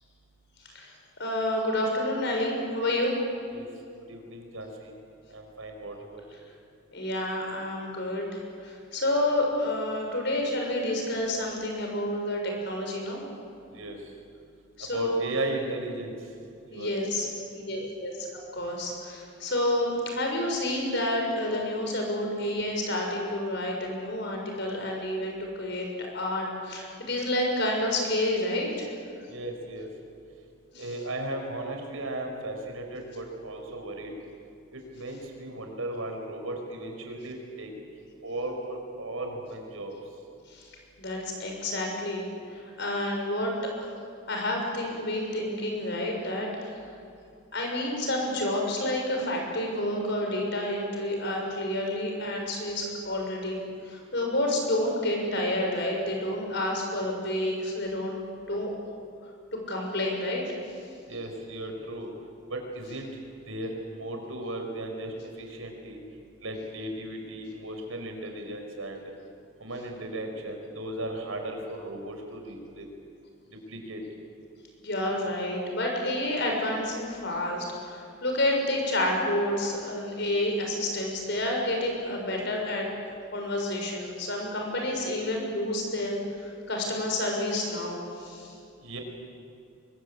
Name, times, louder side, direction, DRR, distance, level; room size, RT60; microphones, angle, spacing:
voice 1, 1.2-3.2 6.9-13.2 14.8-15.2 16.7-17.3 17.5-18.3 18.5-28.9 30.7-30.9 40.5-40.7 41.0-42.3 42.8-43.5 43.8-43.9 44.3-46.7 47.5-53.6 53.9-58.2 58.5-58.7 59.7-60.4 74.8-82.9 83.3-88.5, left 1 dB, 55° left, 1 dB, 6.7 m, -29 dB
voice 2, 4.1-4.9 5.3-6.2 13.7-14.0 14.9-16.1 16.7-16.9 17.7-17.9 29.3-29.9 30.8-34.1 34.7-37.7 38.2-39.9 61.1-62.1 62.5-63.1 63.5-66.0 66.4-69.0 69.6-72.9 73.7-74.0 88.8-89.0, right 1 dB, 80° right, 3 dB, 5.3 m, -36 dB
24.0 x 23.0 x 8.8 m, 2.5 s
head